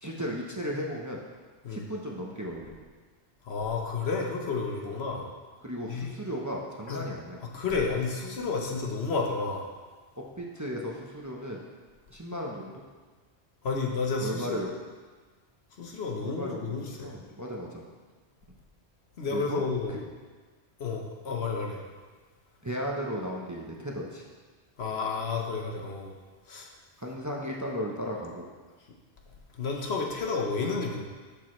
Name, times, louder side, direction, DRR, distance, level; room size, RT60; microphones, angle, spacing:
voice 1, 0.0-1.2 1.7-2.7 4.8-4.9 5.6-7.4 10.2-11.6 12.1-12.7 14.2-14.7 16.2-17.8 19.3-19.6 19.9-20.0 22.6-24.3 27.0-28.5, equal, 20° right, -2 dB, 0.7 m, -35 dB
voice 2, 3.4-5.3 5.9-6.1 6.9-7.0 7.5-9.7 13.6-14.6 15.8-17.1 19.2-20.0 20.8-21.8 24.8-26.1 26.5-26.7 29.6-31.0, left 4 dB, 70° left, 1 dB, 1.3 m, -31 dB
10.5 x 6.8 x 3.2 m, 1.4 s
omnidirectional pair, 1.1 m